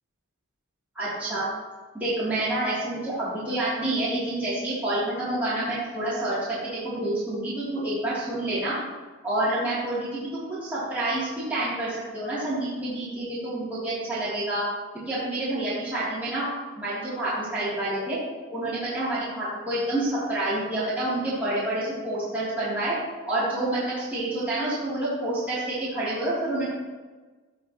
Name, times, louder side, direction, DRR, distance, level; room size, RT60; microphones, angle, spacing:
voice 1, 0.9-1.4 1.9-8.7 9.2-14.6 15.0-16.5 16.8-18.2 18.5-22.9 23.3-26.7, right 1 dB, 10° right, -13 dB, 3.2 m, -28 dB
16.0 x 5.6 x 3.1 m, 1.3 s
head